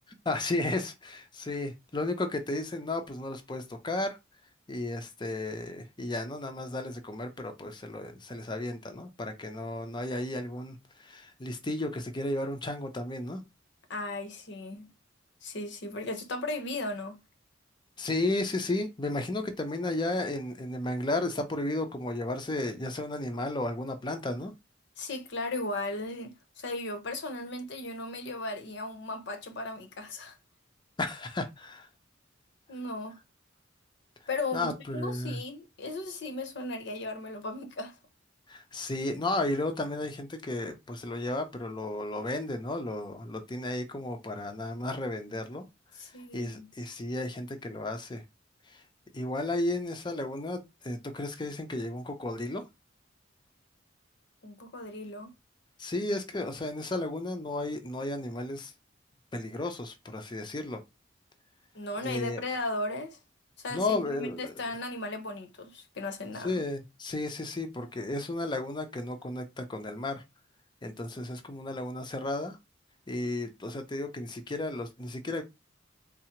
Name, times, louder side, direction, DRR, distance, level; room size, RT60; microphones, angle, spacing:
voice 1, 0.3-4.2 4.7-13.4 18.0-24.5 31.0-31.9 34.5-35.4 38.5-45.6 46.3-48.2 48.7-48.8 49.1-52.6 55.8-58.7 59.3-60.8 62.0-62.4 63.7-64.5 66.4-70.2 70.8-72.6 73.1-75.4, left 2 dB, 25° left, 0.6 m, -33 dB
voice 2, 13.9-14.9 15.4-17.2 25.0-30.4 32.7-33.2 34.3-37.9 46.0-46.7 54.4-55.3 61.7-63.2 63.6-66.6, left 2 dB, 60° left, 0.8 m, -36 dB
3.7 x 2.0 x 4.3 m
head